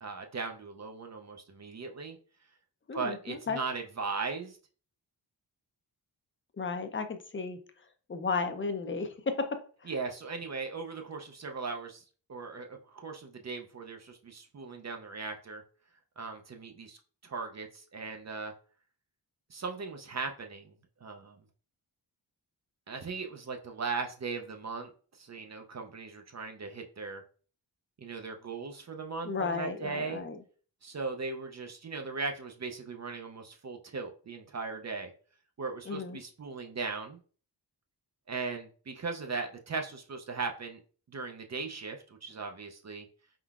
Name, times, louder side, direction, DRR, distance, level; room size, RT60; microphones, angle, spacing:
voice 1, 0.0-2.2 2.9-4.6 9.9-12.0 12.3-15.6 16.2-17.0 17.2-18.5 19.5-20.7 21.0-21.4 22.9-24.9 25.2-27.2 28.0-30.2 30.8-35.1 35.6-37.2 38.3-40.8 41.1-43.1, right 4 dB, 40° right, 4 dB, 0.5 m, -38 dB
voice 2, 2.9-3.6 6.6-7.6 8.1-9.9 29.2-30.4 35.9-36.2, left 4 dB, 30° left, 7 dB, 0.6 m, -34 dB
4.4 x 3.7 x 2.3 m, 0.41 s
wide cardioid pair, 110°, 43 cm